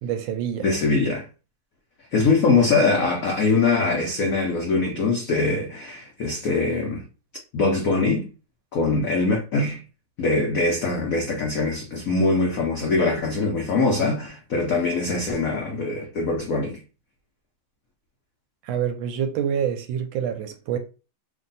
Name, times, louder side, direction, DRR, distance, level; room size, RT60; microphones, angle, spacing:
voice 1, 0.0-0.7 18.6-20.8, right 8 dB, 75° right, 1.2 m, -26 dB
voice 2, 0.6-1.3 2.1-7.0 7.5-8.3 8.7-9.8 10.2-16.8, left 3 dB, 80° left, 0.7 m, -22 dB
3.1 x 2.6 x 3.9 m
omnidirectional pair, 2.4 m